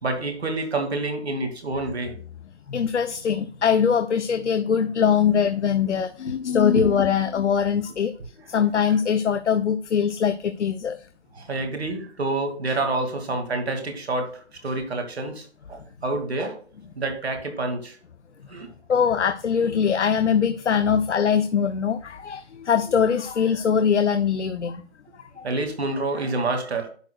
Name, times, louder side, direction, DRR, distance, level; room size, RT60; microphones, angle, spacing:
voice 1, 0.0-2.1 6.8-6.9 11.4-14.3 14.6-16.6 17.0-18.0 18.5-18.7 25.4-26.9, right 2 dB, 65° right, 5 dB, 2.3 m, -28 dB
voice 2, 2.7-8.1 8.5-11.0 12.7-12.8 18.9-24.8 25.4-25.5, left 7 dB, 90° left, 9 dB, 0.8 m, -22 dB
10.5 x 6.5 x 2.3 m, 0.43 s
hypercardioid pair, 180°, 34 cm